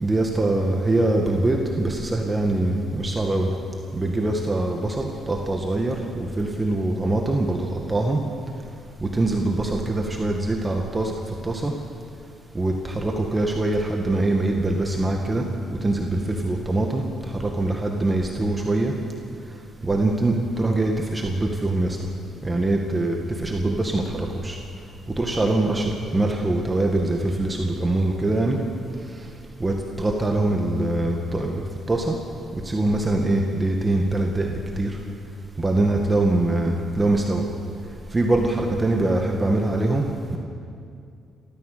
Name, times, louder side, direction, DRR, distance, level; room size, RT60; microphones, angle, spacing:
voice 1, 0.0-3.5 3.9-5.9 6.4-8.2 9.2-11.1 11.4-11.7 12.6-15.4 15.7-16.1 16.4-17.0 17.6-18.9 19.8-21.9 22.4-24.6 25.2-25.8 26.1-28.6 29.6-31.6 31.9-32.1 32.7-34.5 34.8-34.9 35.6-37.4 38.1-40.0 40.3-40.4, right 2 dB, 20° right, 1 dB, 2.0 m, -23 dB
29.5 x 14.0 x 6.9 m, 2.4 s
cardioid pair, 90°, 0 cm